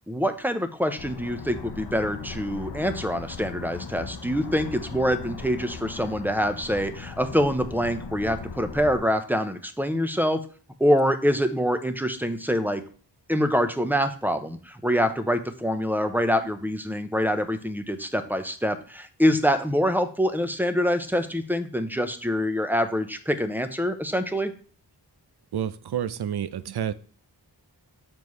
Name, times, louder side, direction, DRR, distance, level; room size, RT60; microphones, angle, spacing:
voice 1, 0.1-10.4 10.8-12.8 13.3-24.5, equal, 5° right, 9 dB, 0.7 m, -25 dB
sound 1, 1.0-9.0, left 5 dB, 60° left, 0.8 m, -38 dB
voice 2, 25.5-26.9, right 9 dB, 60° right, 14 dB, 0.5 m, -29 dB
6.9 x 4.5 x 3.1 m, 0.41 s
cardioid pair, 45°, 44 cm